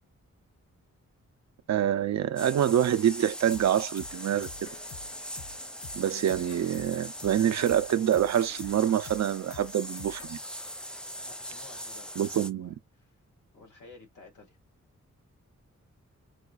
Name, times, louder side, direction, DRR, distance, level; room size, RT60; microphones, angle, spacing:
voice 1, 1.7-4.7 5.9-10.4 12.2-12.7, right 10 dB, 65° right, 0.4 m, -26 dB
sound 1, 2.4-12.5, equal, 5° left, 0.4 m, -41 dB
sound 2, 3.4-10.3, left 5 dB, 45° left, 0.7 m, -48 dB
voice 2, 11.2-12.1 12.6-13.2 13.5-14.6, left 3 dB, 90° left, 2.0 m, -53 dB
4.8 x 2.3 x 2.3 m
wide cardioid pair, 125°, 30 cm